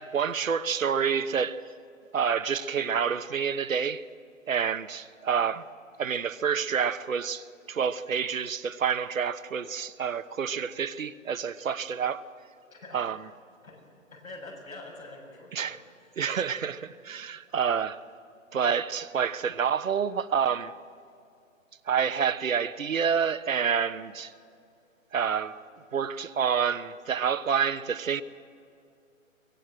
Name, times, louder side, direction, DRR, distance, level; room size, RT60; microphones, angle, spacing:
voice 1, 0.0-1.6 2.1-4.0 4.5-5.7 6.0-12.2 12.9-13.2 15.5-15.8 16.2-18.0 18.5-20.7 21.9-24.3 25.1-25.6 25.9-28.2, right 7 dB, 75° right, 1.1 m, -28 dB
voice 2, 12.7-13.0 13.6-13.8 14.1-15.8, left 2 dB, 85° left, 7.6 m, -45 dB
23.5 x 18.0 x 7.7 m
hypercardioid pair, 145°, 41 cm